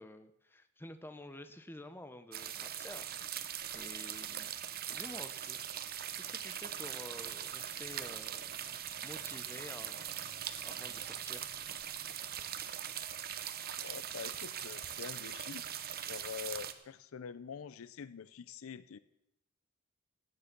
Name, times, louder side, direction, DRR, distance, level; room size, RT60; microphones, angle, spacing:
voice 1, 0.0-3.4 3.7-4.5 4.9-5.6 6.2-11.5, left 1 dB, 10° left, 10 dB, 0.7 m, -50 dB
sound 1, 2.3-16.7, right 10 dB, 45° right, 0.9 m, -41 dB
voice 2, 13.8-15.6 16.0-19.0, left 6 dB, 65° left, 16 dB, 0.5 m, -45 dB
16.5 x 9.6 x 6.0 m, 0.87 s
head